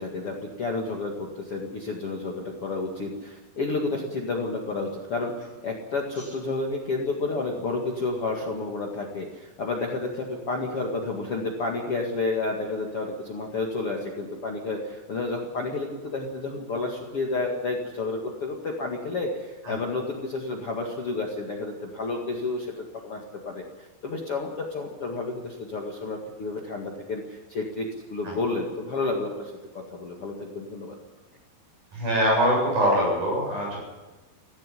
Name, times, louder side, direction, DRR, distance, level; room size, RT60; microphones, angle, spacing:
voice 1, 0.0-5.3 5.6-23.2 23.5-30.9, left 3 dB, 45° left, 0 dB, 2.2 m, -31 dB
voice 2, 31.9-33.8, equal, 45° right, -2 dB, 9.3 m, -23 dB
16.5 x 16.0 x 10.0 m, 1.2 s
omnidirectional pair, 4.9 m